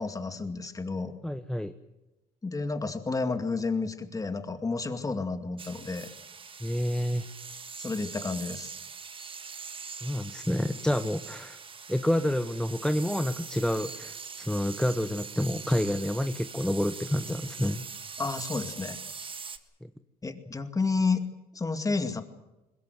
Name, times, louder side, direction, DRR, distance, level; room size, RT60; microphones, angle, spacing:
voice 1, 0.0-1.1 2.4-6.1 7.8-8.7 18.2-19.0 20.2-21.2 21.5-22.2, left 4 dB, 20° left, 8 dB, 2.3 m, -31 dB
voice 2, 1.2-1.7 6.6-7.3 10.0-11.6 11.9-17.8 19.8-19.9, left 1 dB, 5° left, 10 dB, 0.9 m, -28 dB
sound 1, 5.6-19.6, right 5 dB, 30° right, 1.6 m, -42 dB
22.0 x 21.0 x 8.0 m, 1.0 s
cardioid pair, 110°, 17 cm